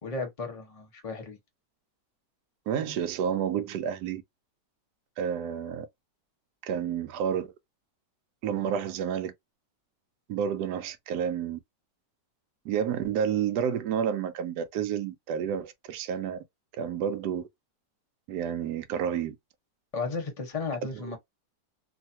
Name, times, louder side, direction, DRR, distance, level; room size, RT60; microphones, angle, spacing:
voice 1, 0.0-1.4 19.9-21.2, left 4 dB, 30° left, 0.8 m, -34 dB
voice 2, 2.7-4.2 5.2-5.9 6.6-7.5 8.4-9.3 10.3-11.6 12.6-16.4 16.8-17.5 18.3-19.4, right 8 dB, 70° right, 1.1 m, -30 dB
3.2 x 2.2 x 2.7 m
omnidirectional pair, 1.9 m